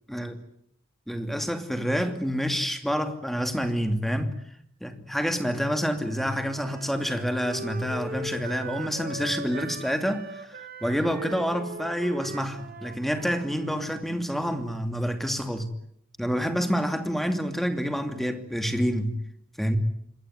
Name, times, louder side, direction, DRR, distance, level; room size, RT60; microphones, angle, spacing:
voice 1, 1.1-4.3 4.8-15.7 16.2-19.2 19.6-19.8, equal, ahead, 2.7 m, -28 dB
Wind instrument woodwind instrument, 5.9-14.0, right 2 dB, 50° right, 2.9 m, -40 dB
27.0 x 21.0 x 9.5 m
head